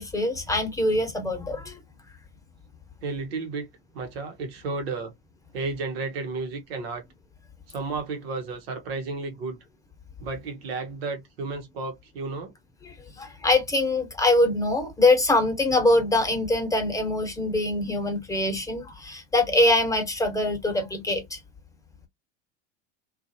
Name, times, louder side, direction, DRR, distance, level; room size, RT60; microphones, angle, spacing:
voice 1, 0.0-1.8 12.8-21.4, left 2 dB, 10° left, 1.0 m, -23 dB
voice 2, 3.0-3.7 3.9-5.1 5.5-7.0 7.7-9.6 10.2-12.5, right 3 dB, 85° right, 1.0 m, -32 dB
2.6 x 2.4 x 2.7 m
supercardioid pair, 95°, 29 cm